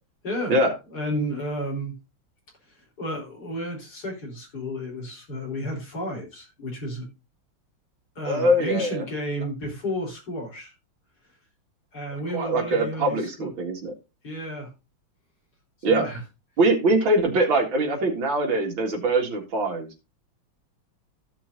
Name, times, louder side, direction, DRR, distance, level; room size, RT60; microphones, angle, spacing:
voice 1, 0.2-0.6 0.9-1.9 2.7-7.1 8.1-10.7 11.9-13.5 14.2-14.7 15.9-16.2, equal, 45° left, -1 dB, 4.6 m, -32 dB
voice 2, 8.2-9.0 12.3-13.9 15.8-16.1 16.6-19.9, right 1 dB, 65° right, 2 dB, 2.9 m, -22 dB
15.0 x 6.1 x 2.7 m, 0.27 s
omnidirectional pair, 2.4 m